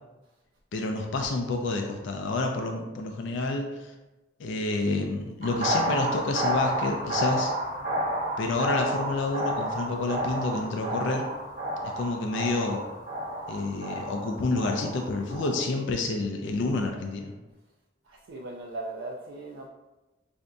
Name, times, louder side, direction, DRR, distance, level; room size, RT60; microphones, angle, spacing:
voice 1, 0.7-3.9 4.4-7.5 8.4-11.3 12.0-12.8 13.5-17.4, left 3 dB, 70° left, 3 dB, 0.4 m, -29 dB
sound 1, 5.4-15.6, right 1 dB, 45° right, 0.9 m, -31 dB
voice 2, 18.0-19.7, right 2 dB, 75° right, -2 dB, 0.4 m, -38 dB
4.8 x 2.6 x 2.2 m, 1.1 s
head